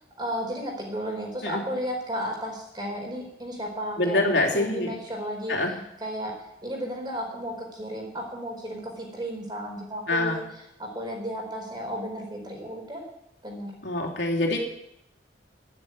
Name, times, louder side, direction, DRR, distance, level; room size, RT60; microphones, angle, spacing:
voice 1, 0.2-5.6 6.0-6.3 6.6-10.4 10.8-13.0 13.4-13.7, equal, 25° right, 0 dB, 5.0 m, -33 dB
voice 2, 4.0-4.9 5.5-5.7 10.1-10.4 13.8-14.6, left 2 dB, 80° left, 0 dB, 3.3 m, -25 dB
11.5 x 11.0 x 9.8 m, 0.79 s
head